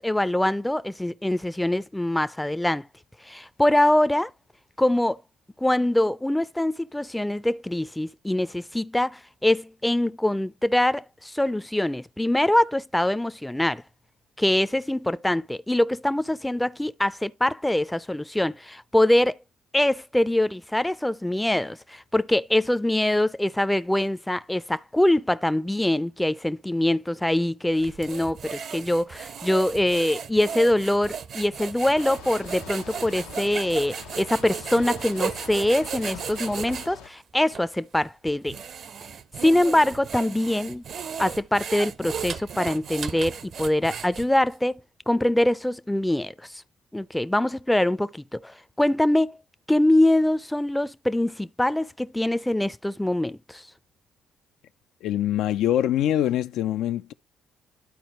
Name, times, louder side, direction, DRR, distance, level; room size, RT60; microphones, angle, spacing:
voice 1, 0.0-2.9 3.3-4.3 4.8-5.2 5.6-13.8 14.4-19.4 19.7-38.6 39.4-40.8 41.2-44.7 45.1-46.3 46.9-49.4 49.7-53.6, left 1 dB, 10° left, 0.5 m, -23 dB
sound 1, 27.7-36.9 37.5-37.6 38.3-44.5, right 7 dB, 60° right, 0.7 m, -35 dB
sound 2, 31.9-37.1, left 7 dB, 90° left, 0.9 m, -43 dB
voice 2, 55.0-57.1, left 11 dB, 75° left, 0.4 m, -24 dB
12.0 x 4.4 x 3.0 m
supercardioid pair, 60°, 0 cm